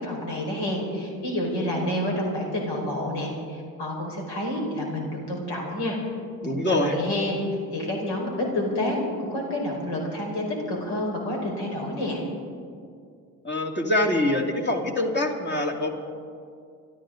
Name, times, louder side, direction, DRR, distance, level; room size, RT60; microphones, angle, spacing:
voice 1, 0.0-6.0 6.6-7.4 7.7-12.2, left 1 dB, 65° left, -1 dB, 5.1 m, -29 dB
voice 2, 6.4-6.9 13.4-15.9, left 1 dB, 25° left, 2 dB, 2.9 m, -24 dB
27.5 x 12.0 x 3.9 m, 2.3 s
hypercardioid pair, 60°, 44 cm